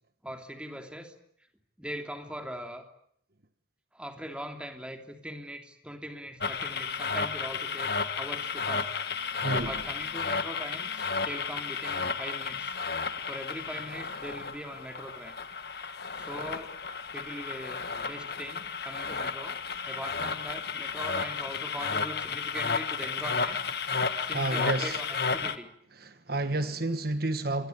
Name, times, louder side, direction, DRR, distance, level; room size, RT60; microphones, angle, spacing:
voice 1, 0.2-1.1 1.8-2.8 3.9-8.9 9.6-12.8 13.3-15.3 16.2-16.8 17.1-19.6 19.9-23.6 24.2-25.7, equal, 5° right, 3.1 m, -41 dB
sound 1, 6.4-25.6, left 5 dB, 55° left, 1.7 m, -33 dB
voice 2, 24.3-25.0 26.0-27.7, right 2 dB, 50° right, 1.4 m, -30 dB
27.0 x 22.5 x 9.4 m
head